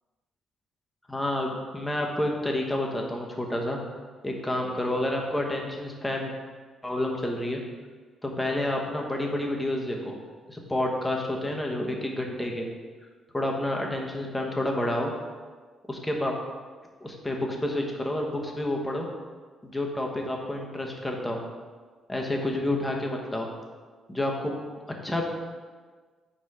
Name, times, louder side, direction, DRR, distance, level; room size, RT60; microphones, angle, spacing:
voice 1, 1.1-3.8 4.2-6.3 6.8-7.6 8.2-10.2 10.5-12.7 13.3-15.1 15.9-16.3 17.0-19.1 19.6-21.4 22.1-23.5 24.1-24.5 25.0-25.2, left 1 dB, 10° left, 0 dB, 1.0 m, -29 dB
4.8 x 4.6 x 4.8 m, 1.5 s
cardioid pair, 90°, 0 cm